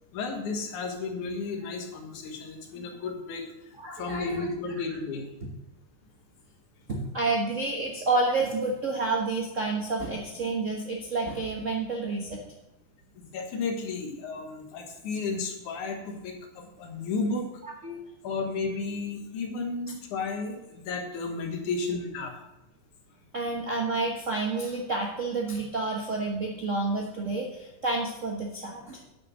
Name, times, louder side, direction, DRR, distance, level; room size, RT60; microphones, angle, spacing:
voice 1, 0.1-3.4 4.0-5.2 13.3-17.5 18.2-22.3, left 4 dB, 75° left, 3 dB, 2.9 m, -33 dB
voice 2, 3.8-4.5 6.9-12.4 17.6-18.0 23.3-29.0, right 3 dB, 60° right, -1 dB, 0.7 m, -29 dB
9.7 x 6.5 x 6.3 m, 0.92 s
omnidirectional pair, 3.5 m